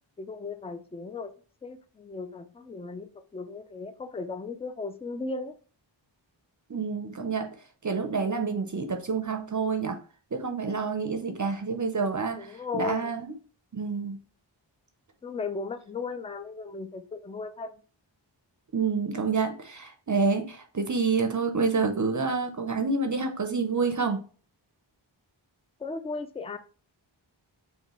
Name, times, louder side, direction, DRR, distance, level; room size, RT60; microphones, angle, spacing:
voice 1, 0.2-1.3 1.6-5.5 12.3-13.2 15.2-17.8 25.8-26.6, left 4 dB, 15° left, 9 dB, 0.3 m, -36 dB
voice 2, 6.7-7.5 7.8-10.0 10.3-13.3 13.7-14.2 18.7-24.2, right 4 dB, 40° right, 5 dB, 0.6 m, -28 dB
5.3 x 2.3 x 3.0 m, 0.40 s
wide cardioid pair, 50°, 47 cm